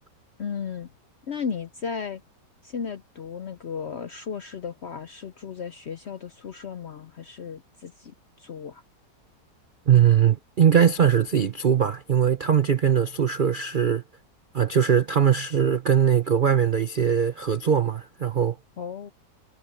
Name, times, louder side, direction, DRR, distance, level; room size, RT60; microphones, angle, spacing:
voice 1, 0.4-0.9 1.3-2.2 2.6-8.8 18.8-19.1, left 6 dB, 65° left, 0.6 m, -35 dB
voice 2, 9.9-14.0 14.5-18.6, right 8 dB, 55° right, 0.5 m, -21 dB
omnidirectional pair, 1.9 m